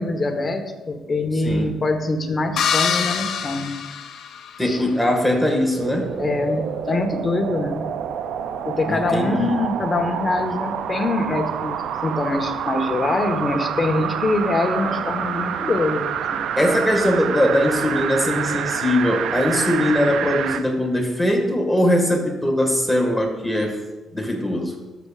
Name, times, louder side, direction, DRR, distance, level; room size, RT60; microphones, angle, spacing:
voice 1, 0.0-3.7 4.6-4.8 6.2-7.8 8.6-16.4, left 2 dB, 30° left, 4 dB, 1.3 m, -24 dB
voice 2, 1.4-1.7 4.6-6.3 8.8-9.3 16.6-23.8 24.1-24.8, left 1 dB, 5° left, 1 dB, 1.8 m, -21 dB
sound 1, 2.6-4.8, left 7 dB, 70° left, 0.7 m, -25 dB
sound 2, 5.7-20.7 21.1-21.2, right 8 dB, 80° right, 0.4 m, -27 dB
13.5 x 7.0 x 2.5 m, 1.2 s
cardioid pair, 90°, 0 cm